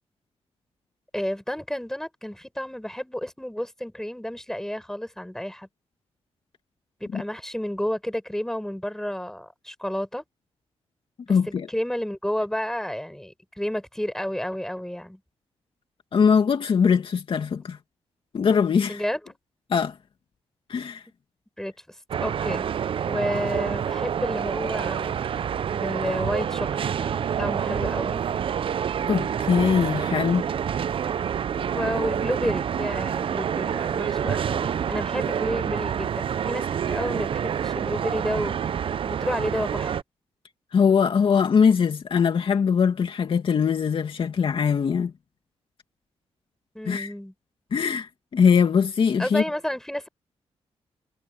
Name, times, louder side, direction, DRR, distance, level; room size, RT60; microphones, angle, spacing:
voice 1, 1.1-5.7 7.0-10.2 11.3-15.2 18.9-19.3 21.6-21.7 22.2-22.7 23.0-25.2 25.7-26.9 27.4-28.2 31.6-38.5 39.0-40.0 46.7-47.3 49.2-50.1, equal, 5° left, 6.1 m, -31 dB
voice 2, 11.3-11.7 16.1-17.8 18.3-19.0 19.7-20.0 20.7-21.0 29.1-30.5 40.7-45.1 46.9-47.1 47.7-49.4, left 6 dB, 55° left, 2.3 m, -21 dB
sound 1, 22.1-40.0, right 8 dB, 55° right, 0.5 m, -27 dB
cardioid pair, 105°, 11 cm